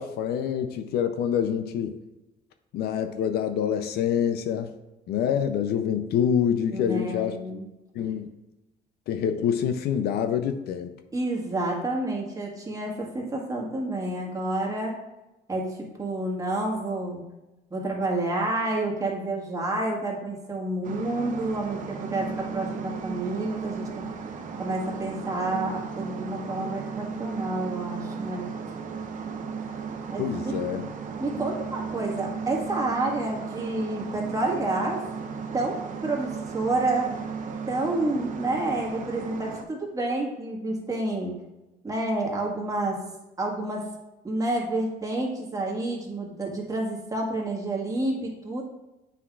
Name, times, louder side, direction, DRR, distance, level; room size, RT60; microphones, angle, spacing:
voice 1, 0.0-2.0 2.7-4.7 5.1-7.3 7.9-8.3 9.1-10.9 30.2-30.8, left 8 dB, 70° left, 8 dB, 0.5 m, -26 dB
voice 2, 6.7-7.7 11.1-15.0 15.5-17.2 17.7-24.1 24.6-28.5 30.1-30.5 31.2-35.0 35.5-37.1 37.7-41.3 41.8-43.0 43.4-43.9 44.2-48.6, right 2 dB, 20° right, -2 dB, 1.7 m, -29 dB
sound 1, 20.8-39.6, right 5 dB, 50° right, 0.7 m, -35 dB
8.4 x 5.8 x 2.4 m, 0.99 s
cardioid pair, 110°, 17 cm